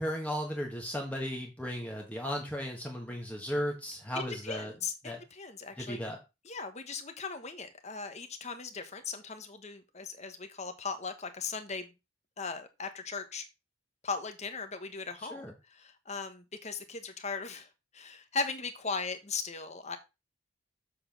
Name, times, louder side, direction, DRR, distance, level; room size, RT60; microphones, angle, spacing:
voice 1, 0.0-4.7 5.0-5.2 5.8-6.2 15.3-15.5, equal, 10° left, 0 dB, 1.4 m, -35 dB
voice 2, 4.4-6.0 6.4-11.9 12.4-13.4 14.0-17.7 17.9-20.0, left 4 dB, 35° left, 8 dB, 1.3 m, -38 dB
7.6 x 4.5 x 5.9 m, 0.26 s
head